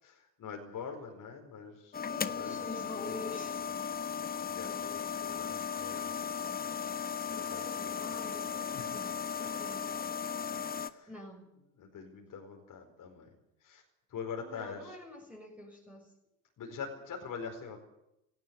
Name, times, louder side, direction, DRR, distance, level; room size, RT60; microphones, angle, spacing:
voice 1, 0.0-2.0 2.3-2.6 2.9-3.2 4.2-6.3 7.3-8.1 8.6-9.0 9.4-9.5 10.9-11.1 11.8-13.3 13.6-13.8 14.1-15.0 16.6-17.8, left 6 dB, 45° left, 2 dB, 4.7 m, -44 dB
sound 1, 1.9-10.9, left 7 dB, 20° left, 1.1 m, -36 dB
voice 2, 2.1-3.6 4.6-5.0 7.3-9.9 11.0-11.5 14.4-16.1, left 1 dB, 5° right, -1 dB, 6.8 m, -47 dB
18.0 x 17.5 x 9.4 m, 0.85 s
figure-of-eight pair, 60°, 45 cm